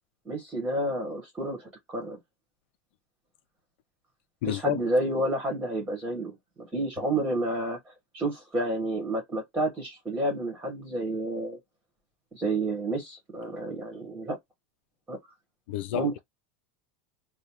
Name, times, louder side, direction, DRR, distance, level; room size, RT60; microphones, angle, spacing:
voice 1, 0.2-2.2 4.5-7.8 8.1-11.6 12.3-14.4 15.1-15.2 15.9-16.2, right 1 dB, 15° right, 1.4 m, -30 dB
voice 2, 4.4-4.8 15.7-16.2, left 13 dB, 70° left, 0.4 m, -30 dB
3.2 x 2.2 x 4.2 m
supercardioid pair, 165°, 6 cm